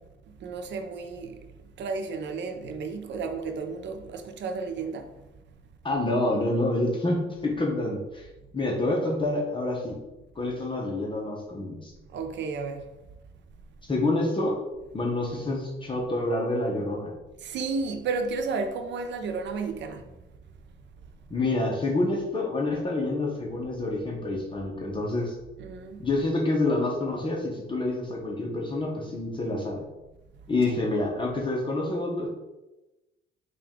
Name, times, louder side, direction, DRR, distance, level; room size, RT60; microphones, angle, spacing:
voice 1, 0.4-1.5 1.8-5.1 12.1-12.9 17.4-20.1 25.6-26.1 30.7-30.8, right 4 dB, 65° right, 0.5 m, -32 dB
voice 2, 5.8-8.3 8.5-10.0 10.4-11.9 13.9-14.6 14.9-17.1 21.3-25.4 26.0-29.8 30.5-32.3, left 2 dB, 25° left, 0.8 m, -27 dB
4.7 x 2.4 x 3.5 m
cardioid pair, 90°, 20 cm